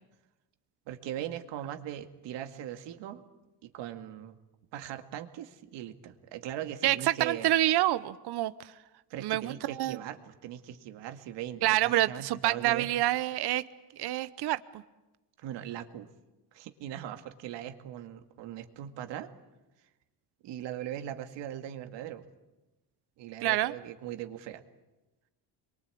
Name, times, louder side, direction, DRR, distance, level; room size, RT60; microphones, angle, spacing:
voice 1, 0.9-3.2 3.6-4.4 4.7-7.5 9.1-12.9 15.4-16.1 16.5-19.3 20.4-22.2 23.2-24.6, right 11 dB, 90° right, 7 dB, 2.2 m, -40 dB
voice 2, 6.8-8.5 9.2-10.0 11.6-13.6 14.0-14.6 23.4-23.7, right 15 dB, 65° right, 14 dB, 0.9 m, -27 dB
27.5 x 22.5 x 8.5 m, 1.1 s
cardioid pair, 120°, 42 cm